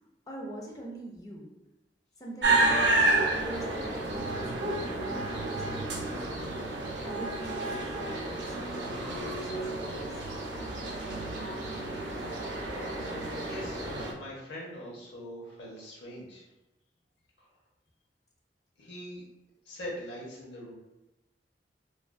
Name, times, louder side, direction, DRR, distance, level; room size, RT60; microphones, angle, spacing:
voice 1, 0.3-1.5 2.2-6.6 7.0-10.2, right 1 dB, 20° left, -1 dB, 0.4 m, -44 dB
sound 1, 2.4-14.1, right 2 dB, 70° right, 0.4 m, -30 dB
voice 2, 13.0-16.4 17.4-17.5 18.8-19.2 19.6-20.7, equal, 80° left, -4 dB, 0.9 m, -42 dB
2.4 x 2.3 x 2.2 m, 0.97 s
head